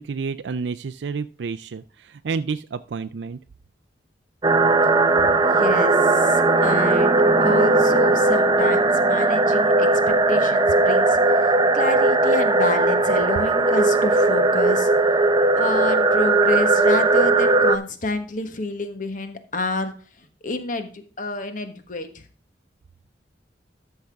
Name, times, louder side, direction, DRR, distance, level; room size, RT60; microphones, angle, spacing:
voice 1, 0.0-3.4, right 5 dB, 75° right, 11 dB, 0.4 m, -30 dB
sound 1, 4.4-17.8, right 2 dB, 25° right, 0.6 m, -18 dB
voice 2, 5.3-11.2 11.7-14.9 15.6-19.9 20.4-22.2, left 2 dB, 50° left, 8 dB, 1.4 m, -29 dB
13.0 x 5.8 x 3.5 m, 0.41 s
head